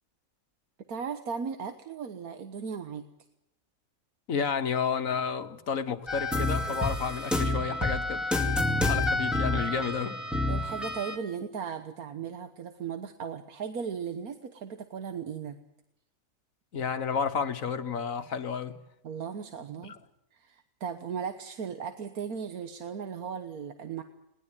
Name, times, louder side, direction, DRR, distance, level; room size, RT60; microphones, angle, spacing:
voice 1, 0.9-3.0 10.5-15.6 19.0-20.0 20.3-24.0, right 6 dB, 85° right, 1.7 m, -37 dB
voice 2, 4.3-8.2 8.9-10.2 16.7-18.8 19.8-20.0, left 6 dB, 65° left, 1.7 m, -31 dB
sound 1, 6.1-11.2, left 2 dB, ahead, 2.4 m, -28 dB
21.0 x 19.5 x 9.0 m
omnidirectional pair, 1.5 m